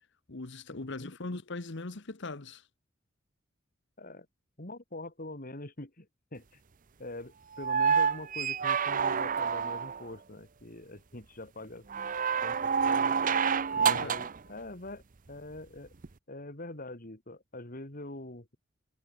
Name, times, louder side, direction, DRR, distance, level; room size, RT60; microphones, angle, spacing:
voice 1, 0.3-2.6 13.8-14.2, left 2 dB, 65° left, 1.3 m, -40 dB
voice 2, 4.6-6.6 7.0-11.9 12.4-13.2 13.7-15.0 15.3-15.9 16.3-18.6, left 2 dB, 45° left, 3.6 m, -44 dB
sound 1, 7.6-10.1 11.9-14.4 16.0-16.1, right 6 dB, 45° right, 0.7 m, -28 dB
head